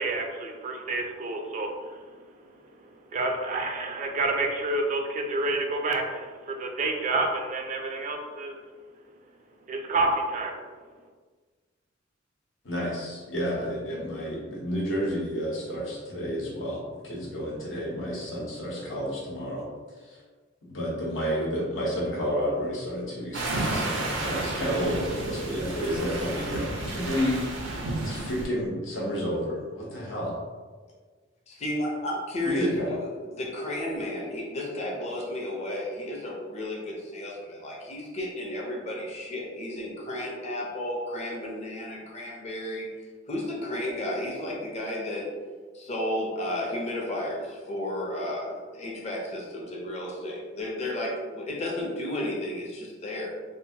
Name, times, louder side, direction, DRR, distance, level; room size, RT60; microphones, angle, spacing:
voice 1, 0.0-2.0 3.1-8.6 9.7-10.6, right 2 dB, 40° right, 3 dB, 0.4 m, -29 dB
voice 2, 12.6-19.6 20.0-20.2 20.7-27.7 28.0-30.3 32.4-32.9, equal, 85° left, -5 dB, 1.0 m, -30 dB
sound 1, 23.3-28.5, right 2 dB, 85° right, 0.6 m, -31 dB
voice 3, 31.5-33.1 33.4-42.9 43.3-45.2 45.7-53.3, left 1 dB, 35° left, -3 dB, 0.7 m, -33 dB
2.9 x 2.5 x 2.7 m, 1.5 s
head